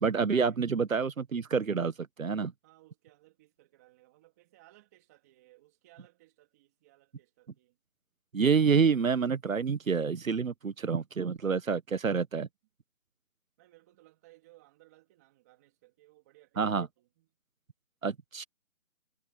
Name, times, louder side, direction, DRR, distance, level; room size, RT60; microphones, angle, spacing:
voice 1, 0.0-2.5 8.3-12.5 16.6-16.9 18.0-18.4, right 5 dB, 75° right, 1.3 m, -28 dB
voice 2, 2.6-7.8 13.6-17.3, right 18 dB, 10° right, 3.2 m, -61 dB
hypercardioid pair, 170°, 40 cm